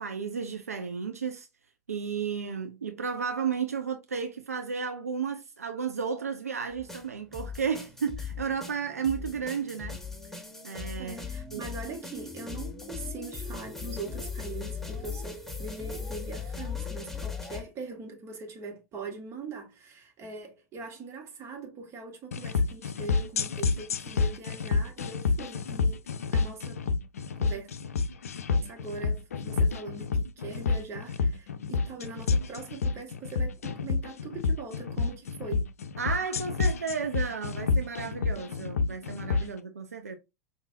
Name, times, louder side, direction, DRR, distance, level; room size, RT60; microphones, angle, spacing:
voice 1, 0.0-1.5 1.9-10.0 10.6-11.2 11.5-11.7 36.0-40.2, right 6 dB, 80° right, 0.5 m, -33 dB
sound 1, 6.7-17.6, left 5 dB, 5° left, 0.9 m, -38 dB
voice 2, 11.0-26.0 26.3-26.8 27.3-27.7 28.6-35.7, right 3 dB, 35° right, 1.4 m, -42 dB
sound 2, 22.3-39.5, left 4 dB, 75° left, 0.4 m, -29 dB
5.1 x 2.6 x 2.6 m
figure-of-eight pair, 85°, 8 cm